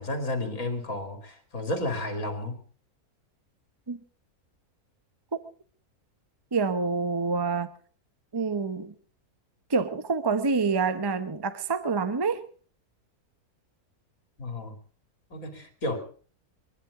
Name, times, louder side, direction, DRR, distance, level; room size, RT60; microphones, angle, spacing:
voice 1, 0.0-2.6 14.4-14.8 15.3-16.0, left 1 dB, 60° left, 3.0 m, -32 dB
voice 2, 6.5-7.7 8.3-8.9 9.7-12.4, right 4 dB, 20° right, 0.8 m, -27 dB
23.5 x 11.0 x 4.9 m
omnidirectional pair, 1.6 m